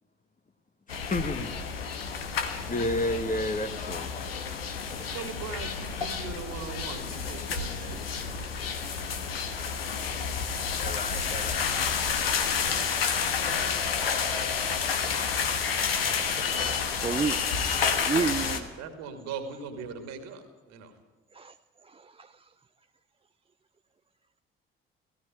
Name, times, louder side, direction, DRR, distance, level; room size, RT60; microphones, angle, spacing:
sound 1, 0.9-18.6, left 6 dB, 80° left, 1.3 m, -30 dB
voice 1, 0.9-1.5 2.7-4.1 10.8-11.7, left 1 dB, 25° left, 9 dB, 1.6 m, -31 dB
voice 2, 4.9-8.1 16.2-16.8 17.2-17.3 17.8-20.9, right 5 dB, 65° right, 8 dB, 2.5 m, -40 dB
voice 3, 17.0-17.4 17.8-18.7 21.3-21.5 21.9-22.3, right 5 dB, 20° right, 9 dB, 0.7 m, -30 dB
17.5 x 16.5 x 9.3 m, 1.2 s
figure-of-eight pair, 45°, 29 cm